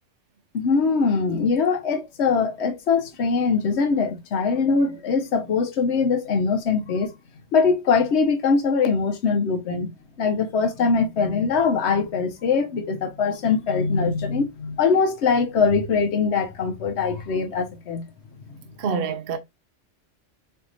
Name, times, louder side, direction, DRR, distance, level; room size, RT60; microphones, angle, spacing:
voice 1, 0.5-7.1 7.5-9.9 10.2-18.1 18.5-18.6, left 5 dB, 65° left, 1.0 m, -22 dB
voice 2, 18.8-19.4, right 5 dB, 60° right, 0.7 m, -26 dB
4.4 x 2.8 x 2.6 m
omnidirectional pair, 1.2 m